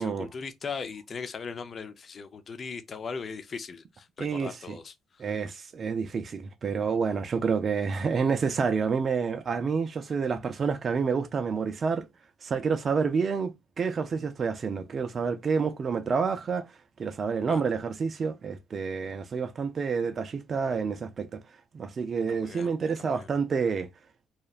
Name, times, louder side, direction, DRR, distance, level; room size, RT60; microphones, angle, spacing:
voice 1, 0.0-5.3 17.5-17.6 22.3-22.7 23.0-23.3, left 5 dB, 45° left, 0.4 m, -39 dB
voice 2, 4.2-4.8 5.2-12.1 12.4-16.7 17.0-21.4 21.7-23.9, right 5 dB, 45° right, 0.3 m, -28 dB
2.8 x 2.1 x 2.3 m
supercardioid pair, 75°, 0 cm